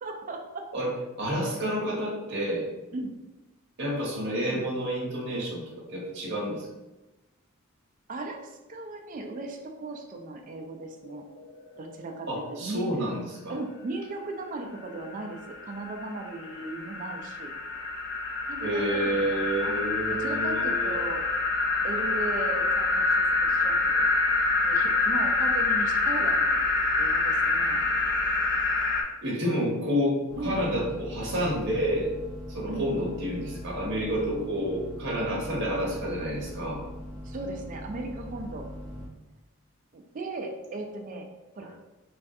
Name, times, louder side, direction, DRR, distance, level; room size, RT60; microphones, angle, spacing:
voice 1, 0.0-0.6 2.9-3.1 8.1-11.3 11.8-12.9 13.5-17.5 18.5-19.7 20.1-21.2 21.8-24.1 24.6-26.6 27.0-27.8 30.4-30.8 32.7-33.1 37.2-38.7 39.9-41.3 41.6-41.7, right 2 dB, 35° right, 3 dB, 0.3 m, -37 dB
voice 2, 0.7-2.7 3.8-6.7 12.3-13.5 18.6-20.9 29.2-32.1 32.5-36.9 41.6-41.7, equal, 55° right, -5 dB, 0.8 m, -29 dB
sound 1, 11.1-11.2 11.4-11.5 11.9-12.0 14.9-29.0, left 3 dB, 50° left, 0.4 m, -26 dB
sound 2, 30.3-39.1, equal, 15° left, 0.7 m, -40 dB
3.3 x 2.3 x 2.6 m, 1.0 s
head